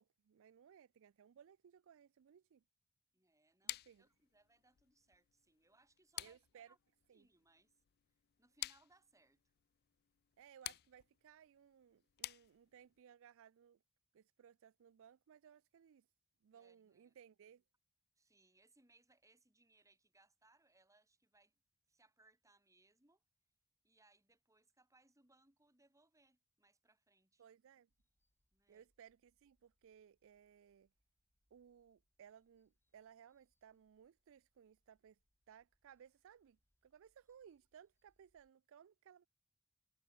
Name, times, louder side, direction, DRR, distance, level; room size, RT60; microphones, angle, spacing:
voice 1, 0.0-2.6 3.6-4.0 6.2-6.7 7.1-7.3 10.4-13.8 14.1-16.1 16.4-17.6 27.4-27.9 28.7-30.9 31.5-35.2 35.5-36.6 36.8-39.3, right 8 dB, 60° right, 0.4 m, -62 dB
voice 2, 3.1-6.8 7.1-7.7 8.4-9.4 16.5-17.2 18.2-21.6 21.9-23.2 23.8-27.5 28.5-28.9, right 2 dB, 15° right, 6.9 m, -73 dB
sound 1, 3.7-13.0, left 15 dB, 45° left, 0.4 m, -51 dB
sound 2, 27.9-38.5, equal, 10° left, 7.5 m, -89 dB
head